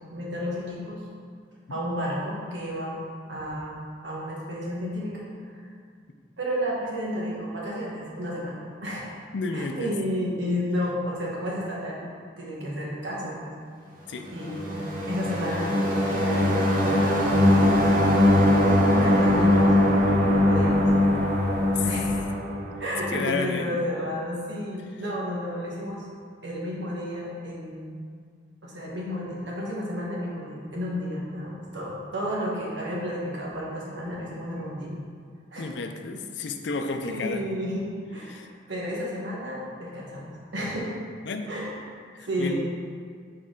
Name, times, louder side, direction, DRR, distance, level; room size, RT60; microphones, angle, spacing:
voice 1, 0.1-1.0 1.7-3.0 3.3-5.6 6.4-9.1 9.5-12.1 12.4-13.5 14.3-14.8 15.1-15.7 16.1-18.2 18.9-19.7 20.3-20.9 21.8-22.1 22.8-26.1 26.4-28.0 28.6-34.9 35.5-35.7 37.0-40.9 41.5-41.8 42.2-42.5, equal, 85° right, -5 dB, 1.5 m, -32 dB
voice 2, 9.3-9.9 14.1-14.3 21.7-21.9 23.1-23.8 35.6-37.5 38.3-38.5 41.2-41.5 42.1-42.5, left 4 dB, 75° left, 6 dB, 0.5 m, -31 dB
sound 1, 14.4-23.1, left 1 dB, 50° right, 1.0 m, -21 dB
sound 2, 17.2-22.3, equal, 10° left, 0.5 m, -40 dB
6.3 x 4.6 x 3.9 m, 2.1 s
head